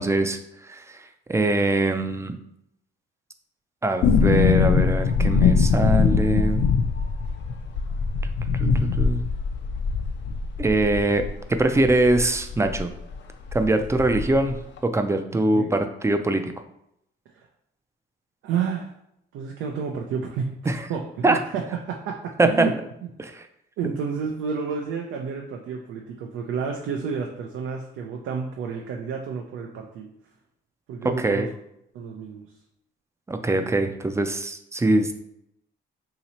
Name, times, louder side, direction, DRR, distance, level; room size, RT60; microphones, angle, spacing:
voice 1, 0.0-2.4 3.8-6.6 8.5-9.2 10.6-11.2 11.5-12.9 13.5-14.6 14.8-16.5 20.7-20.9 21.2-21.4 22.4-22.7 23.2-23.5 31.0-31.5 33.3-35.1, right 2 dB, 15° right, 7 dB, 0.4 m, -23 dB
sound 1, 4.0-12.8 13.1-13.2 13.5-14.5 14.8-14.9, left 5 dB, 65° left, 0.5 m, -22 dB
voice 2, 18.4-18.9 19.3-20.5 20.9-22.7 23.8-30.1 30.9-31.5 31.9-32.5, right 6 dB, 85° right, 1 dB, 0.5 m, -30 dB
2.9 x 2.8 x 4.2 m, 0.77 s
cardioid pair, 90°, 20 cm